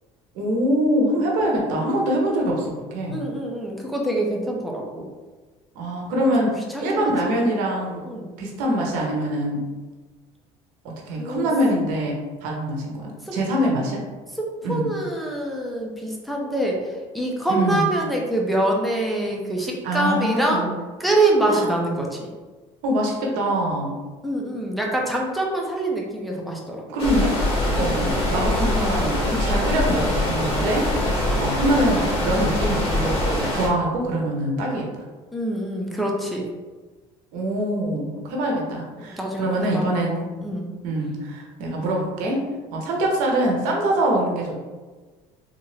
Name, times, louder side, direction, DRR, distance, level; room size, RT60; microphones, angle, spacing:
voice 1, 0.3-3.2 5.7-8.0 8.4-9.6 11.1-14.0 14.6-14.9 17.5-17.9 19.8-20.7 21.5-21.7 22.8-24.0 26.9-27.3 27.7-30.9 31.4-35.0 37.3-40.3 40.8-42.4 42.7-44.6, right 1 dB, 75° right, -1 dB, 1.0 m, -24 dB
voice 2, 3.1-5.1 6.7-7.5 8.1-8.3 11.2-11.5 13.2-13.4 14.3-20.7 21.0-22.3 24.2-26.8 27.8-28.2 35.3-36.5 39.1-39.9 40.4-40.7, right 1 dB, ahead, -2 dB, 0.8 m, -25 dB
sound 1, 27.0-33.7, left 1 dB, 45° left, 1.4 m, -23 dB
3.6 x 2.7 x 3.2 m, 1.3 s
supercardioid pair, 105°, 14 cm